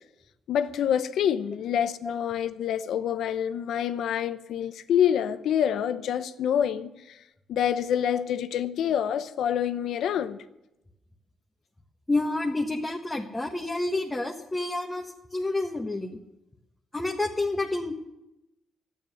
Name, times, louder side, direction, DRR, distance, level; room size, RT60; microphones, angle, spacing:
voice 1, 0.5-7.2 7.5-10.4, left 9 dB, 75° left, 0.8 m, -27 dB
voice 2, 12.1-16.2 16.9-17.9, left 2 dB, 15° left, 1.4 m, -29 dB
12.0 x 9.1 x 7.9 m
cardioid pair, 90°, 0 cm